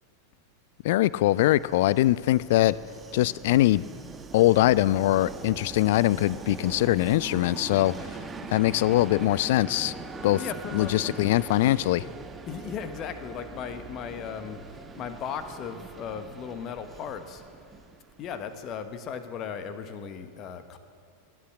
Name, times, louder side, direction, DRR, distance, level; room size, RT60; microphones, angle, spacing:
voice 1, 0.8-2.8 3.1-3.8 4.3-7.9 8.5-9.9 10.2-10.4 10.7-12.1, left 15 dB, 55° left, 20 dB, 0.3 m, -22 dB
Train, 1.1-18.8, right 4 dB, 15° right, 1.1 m, -42 dB
voice 2, 10.4-10.9 12.5-17.4 18.2-20.8, left 7 dB, 35° left, 10 dB, 1.1 m, -37 dB
19.5 x 8.5 x 7.7 m, 2.3 s
figure-of-eight pair, 90°, 0 cm